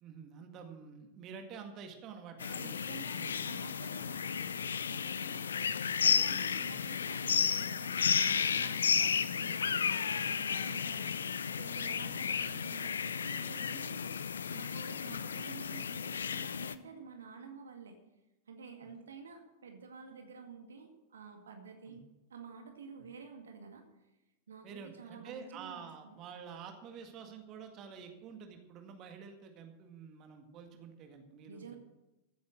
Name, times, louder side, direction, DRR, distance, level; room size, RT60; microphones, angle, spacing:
voice 1, 0.0-3.5 6.6-6.8 8.8-8.9 12.0-12.1 14.9-15.0 18.8-18.9 21.9-22.0 24.6-31.8, right 6 dB, 35° right, 5 dB, 1.9 m, -49 dB
sound 1, 2.4-16.7, left 7 dB, 70° left, 0.6 m, -33 dB
voice 2, 2.5-14.1 14.5-18.0 18.5-22.0 22.3-23.9 24.5-26.2 31.5-31.8, right 5 dB, 70° right, 4 dB, 2.0 m, -50 dB
15.0 x 9.5 x 6.4 m, 0.99 s
figure-of-eight pair, 90°, 0 cm